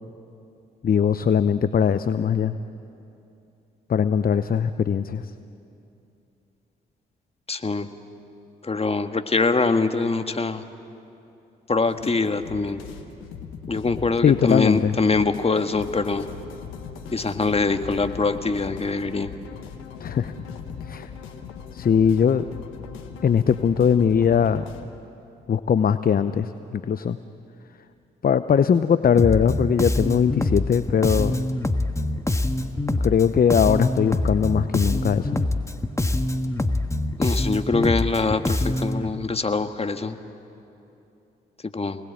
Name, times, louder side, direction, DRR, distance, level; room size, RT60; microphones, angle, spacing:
voice 1, 0.8-2.5 3.9-5.2 14.2-15.0 20.0-20.3 20.9-21.1 21.7-22.5 23.2-24.6 25.5-27.2 28.2-31.4 33.0-35.4, left 7 dB, 45° left, 12 dB, 0.8 m, -20 dB
voice 2, 7.5-7.9 8.6-10.6 11.7-12.8 13.7-16.2 17.1-19.3 37.2-40.2 41.6-42.0, left 3 dB, 30° left, 8 dB, 1.6 m, -23 dB
sound 1, 11.9-24.9, left 7 dB, 80° left, 1.6 m, -39 dB
Bass guitar, 29.2-39.1, left 1 dB, 15° left, 1.5 m, -24 dB
28.5 x 19.5 x 8.8 m, 2.8 s
hypercardioid pair, 40°, 20 cm